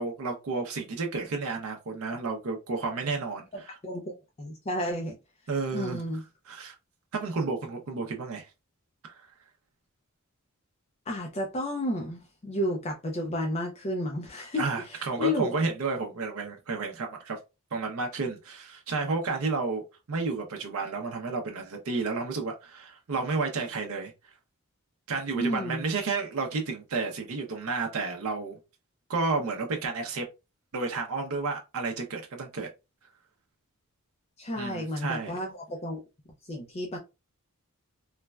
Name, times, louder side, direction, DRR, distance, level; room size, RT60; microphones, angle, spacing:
voice 1, 0.0-3.8 5.5-6.0 6.5-6.8 7.1-8.5 9.0-9.3 14.6-17.4 17.7-24.1 25.1-28.6 29.1-30.2 30.7-32.7 34.6-35.4, right 4 dB, 75° right, 0.5 m, -31 dB
voice 2, 3.5-5.1 5.7-6.2 11.1-15.5 25.4-25.8 34.4-36.0 36.5-37.0, left 1 dB, 30° left, 0.4 m, -32 dB
3.2 x 2.1 x 2.2 m
head